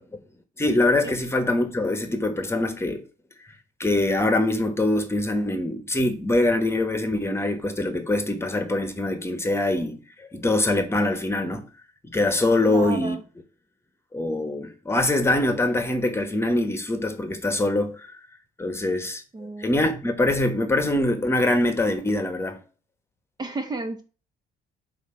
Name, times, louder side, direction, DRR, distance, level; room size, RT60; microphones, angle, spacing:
voice 1, 0.6-3.0 3.8-11.7 12.0-13.2 14.1-18.1 18.6-19.2 19.6-22.6, left 2 dB, 15° left, 1.2 m, -23 dB
voice 2, 12.7-13.2 19.3-19.7 23.4-24.0, right 2 dB, 25° right, 0.9 m, -32 dB
8.1 x 2.9 x 5.8 m
cardioid pair, 110°, 17 cm